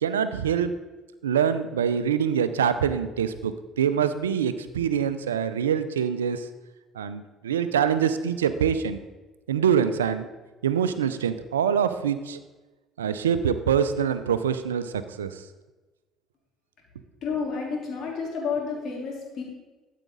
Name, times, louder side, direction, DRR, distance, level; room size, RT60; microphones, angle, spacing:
voice 1, 0.0-0.7 1.2-6.5 7.0-9.0 9.5-10.3 10.6-12.4 13.0-15.4, right 8 dB, 90° right, 12 dB, 0.5 m, -25 dB
voice 2, 17.2-19.4, left 5 dB, 55° left, -2 dB, 3.8 m, -30 dB
13.5 x 8.3 x 4.0 m, 1.2 s
hypercardioid pair, 55°, 0 cm